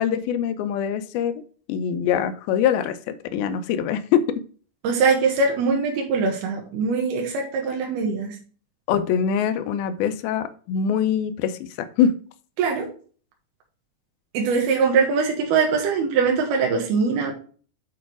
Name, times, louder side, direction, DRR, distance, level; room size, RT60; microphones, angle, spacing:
voice 1, 0.0-1.4 1.7-4.4 8.9-12.2, left 8 dB, 80° left, 11 dB, 2.5 m, -23 dB
voice 2, 4.8-8.4 12.6-12.9 14.3-17.3, right 5 dB, 90° right, 1 dB, 3.3 m, -22 dB
8.5 x 5.1 x 4.6 m, 0.42 s
omnidirectional pair, 4.4 m